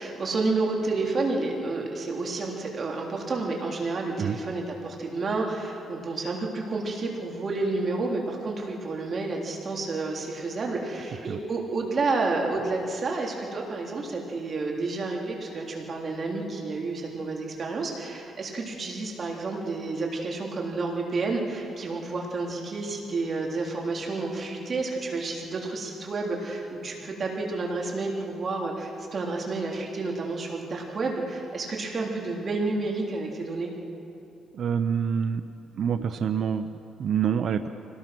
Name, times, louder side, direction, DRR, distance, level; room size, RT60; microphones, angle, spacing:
voice 1, 0.0-33.7, right 3 dB, 45° right, 0 dB, 3.7 m, -30 dB
voice 2, 34.5-35.4 35.7-37.7, right 7 dB, 60° right, 9 dB, 0.7 m, -27 dB
25.0 x 18.5 x 6.2 m, 2.7 s
cardioid pair, 90°, 0 cm